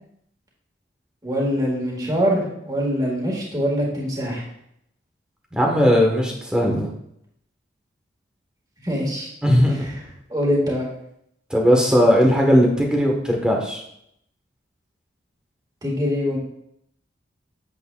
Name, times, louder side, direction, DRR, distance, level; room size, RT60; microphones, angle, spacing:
voice 1, 1.2-4.4 8.8-9.3 9.6-9.9 10.3-10.8 15.8-16.4, equal, 20° right, -3 dB, 1.9 m, -23 dB
voice 2, 5.5-6.9 9.4-9.8 11.5-13.8, equal, 5° right, -1 dB, 1.3 m, -18 dB
8.3 x 7.9 x 2.4 m, 0.74 s
head